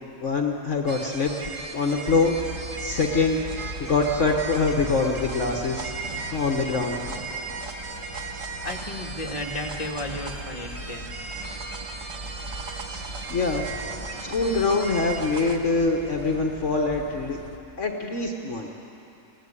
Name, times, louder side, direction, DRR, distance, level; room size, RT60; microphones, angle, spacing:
voice 1, 0.2-1.3 1.7-2.4 2.8-3.4 3.8-5.9 6.3-7.0 12.9-13.8 14.2-17.4 17.8-18.7, left 3 dB, 55° left, 2 dB, 1.5 m, -24 dB
sound 1, 0.9-15.6, right 4 dB, 60° right, 1.8 m, -37 dB
sound 2, 2.1-17.6, right 1 dB, 20° right, 1.0 m, -40 dB
voice 2, 8.6-11.1, left 2 dB, 25° left, 0 dB, 1.7 m, -34 dB
21.5 x 16.0 x 9.8 m, 2.9 s
omnidirectional pair, 1.6 m